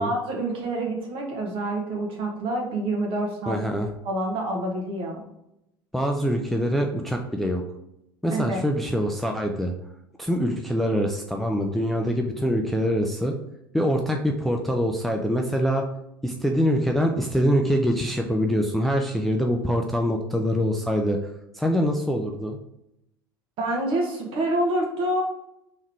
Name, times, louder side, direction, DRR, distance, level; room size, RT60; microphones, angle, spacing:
voice 1, 0.0-3.6 4.0-5.2 8.3-8.6 23.6-25.2, right 1 dB, 45° right, 0 dB, 1.3 m, -27 dB
voice 2, 3.5-3.9 5.9-7.6 8.2-9.7 10.2-13.3 13.7-15.8 16.2-21.2 21.5-22.6, equal, ahead, 2 dB, 0.4 m, -24 dB
3.6 x 3.1 x 3.4 m, 0.83 s
figure-of-eight pair, 70°, 12 cm